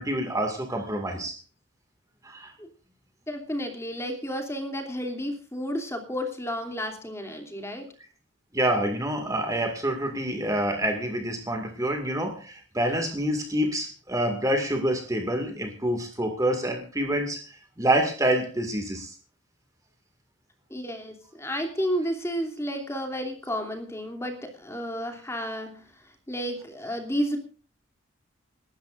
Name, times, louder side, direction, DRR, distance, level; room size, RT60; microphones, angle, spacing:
voice 1, 0.0-1.4 2.2-2.5 8.5-19.2, right 1 dB, 15° right, 4 dB, 2.1 m, -27 dB
voice 2, 3.3-7.9 20.7-25.9 26.3-27.4, equal, 15° left, 4 dB, 2.8 m, -31 dB
27.5 x 13.0 x 2.5 m, 0.38 s
head